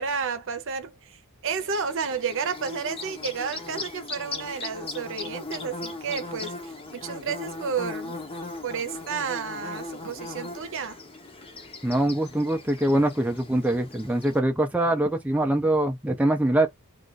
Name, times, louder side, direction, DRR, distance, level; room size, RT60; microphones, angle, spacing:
voice 1, 0.0-8.2 8.6-11.0, right 6 dB, 60° right, 0.8 m, -31 dB
Bird / Buzz, 1.5-14.4, left 2 dB, 25° left, 0.8 m, -38 dB
voice 2, 11.8-16.7, right 1 dB, 5° right, 0.5 m, -23 dB
2.5 x 2.5 x 4.0 m
head